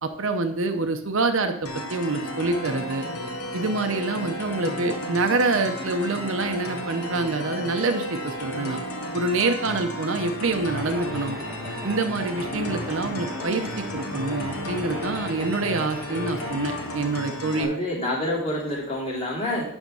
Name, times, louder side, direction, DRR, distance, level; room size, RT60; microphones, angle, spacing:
voice 1, 0.0-3.1 3.5-8.8 9.1-11.4 11.8-17.7, right 3 dB, 60° right, 7 dB, 0.7 m, -26 dB
sound 1, 1.7-17.7, left 1 dB, 80° left, 1.2 m, -33 dB
sound 2, 10.8-16.8, equal, 5° right, 1.2 m, -38 dB
voice 2, 17.5-19.6, left 1 dB, 25° left, -5 dB, 2.8 m, -27 dB
10.5 x 3.6 x 6.3 m, 0.70 s
head